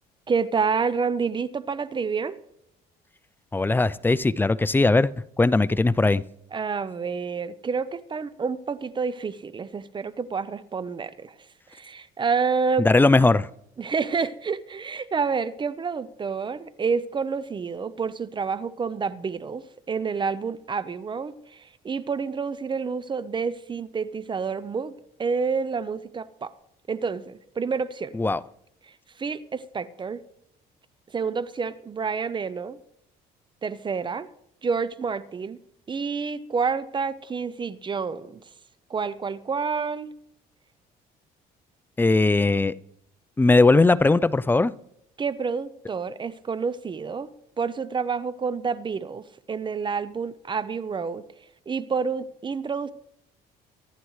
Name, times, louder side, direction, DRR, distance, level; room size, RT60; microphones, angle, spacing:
voice 1, 0.3-2.4 6.5-11.4 11.7-12.9 13.8-24.9 25.2-26.5 26.9-28.1 28.9-30.2 31.1-32.8 33.6-34.3 34.6-35.6 35.9-38.4 38.9-40.1 45.2-47.3 47.6-51.2 51.7-52.9, right 5 dB, 30° right, 0.7 m, -28 dB
voice 2, 3.5-5.1 5.4-6.2 12.8-13.5 28.1-28.4 42.0-42.7 43.4-44.7, left 3 dB, 10° left, 0.4 m, -19 dB
24.0 x 11.5 x 3.2 m
cardioid pair, 110°, 17 cm